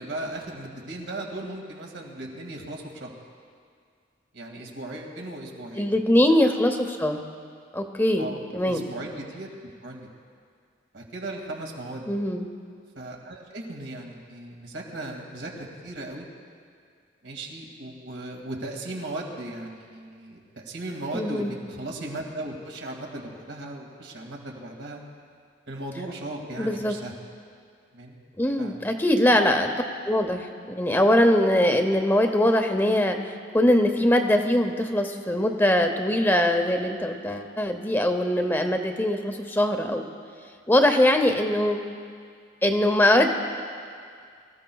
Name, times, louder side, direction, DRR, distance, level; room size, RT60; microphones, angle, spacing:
voice 1, 0.0-3.1 4.3-5.9 8.2-8.4 8.6-9.5 9.8-10.1 10.9-12.0 13.0-16.3 17.2-25.0 25.7-27.1 27.9-28.2 28.6-28.7, right 1 dB, 80° right, 0 dB, 2.1 m, -37 dB
voice 2, 5.8-7.2 7.7-8.8 12.1-12.5 21.1-21.6 26.6-27.0 28.4-29.7 30.0-33.2 33.5-40.1 40.7-41.8 42.6-43.3, left 1 dB, 10° left, 5 dB, 0.8 m, -22 dB
24.5 x 15.0 x 2.3 m, 2.2 s
head